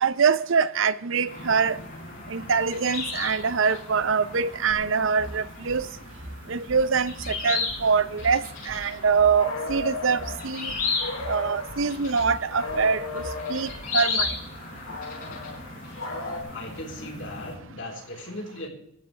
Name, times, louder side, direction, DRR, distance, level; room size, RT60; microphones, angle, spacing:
voice 1, 0.0-1.8 2.3-5.9 6.5-10.7 11.2-13.2 13.5-14.3, right 5 dB, 65° right, 0.6 m, -24 dB
sound 1, 1.3-17.6, left 4 dB, 40° left, 6.1 m, -35 dB
sound 2, 4.7-14.5, equal, 20° right, 4.5 m, -42 dB
sound 3, 9.4-10.4 11.0-11.9 12.5-13.8 14.9-16.4, left 3 dB, 85° left, 3.0 m, -35 dB
voice 2, 16.5-18.7, left 1 dB, 60° left, 3.8 m, -37 dB
18.5 x 14.0 x 3.3 m
head